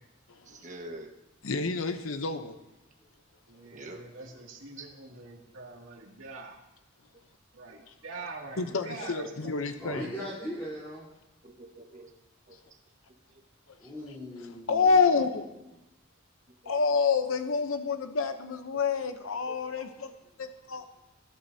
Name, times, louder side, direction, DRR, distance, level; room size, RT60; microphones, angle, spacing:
voice 1, 0.4-1.1 3.7-4.0 4.8-4.9 7.7-7.8 8.6-8.8 9.0-9.1 9.4-9.5 10.1-10.5 11.4-12.1 12.5-12.8 13.3-13.4 14.4-14.5 16.6-17.0 19.5-19.9, right 2 dB, 35° right, 2 dB, 1.5 m, -47 dB
voice 2, 1.4-2.5 8.6-10.1 14.7-15.4 16.7-20.1 20.4-20.8, left 5 dB, 85° left, 8 dB, 0.8 m, -28 dB
voice 3, 3.5-6.6 7.5-10.1, right 3 dB, 80° right, -1 dB, 2.4 m, -44 dB
voice 4, 9.8-11.1 13.8-14.9, equal, 10° left, -9 dB, 3.7 m, -39 dB
20.0 x 11.5 x 2.8 m, 0.96 s
head